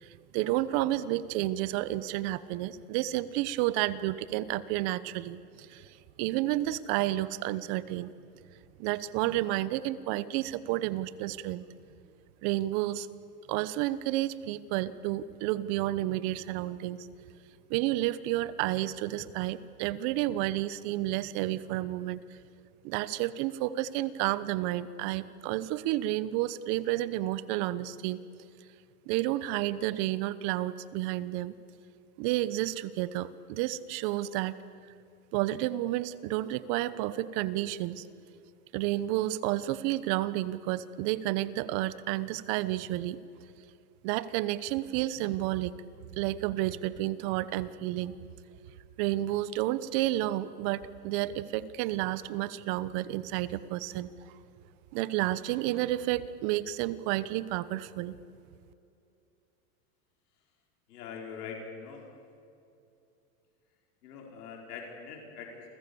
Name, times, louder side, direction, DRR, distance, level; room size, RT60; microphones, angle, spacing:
voice 1, 0.0-8.1 8.8-11.6 12.4-13.1 13.5-17.1 17.7-22.2 22.8-28.2 29.1-31.5 32.2-34.5 35.3-38.1 38.7-43.2 44.0-45.7 46.2-48.2 49.0-54.1 54.9-58.2, right 15 dB, 50° right, 16 dB, 1.1 m, -31 dB
voice 2, 60.9-62.0 64.0-65.7, left 6 dB, 80° left, 0 dB, 5.1 m, -43 dB
29.5 x 23.5 x 7.1 m, 2.6 s
supercardioid pair, 130°, 46 cm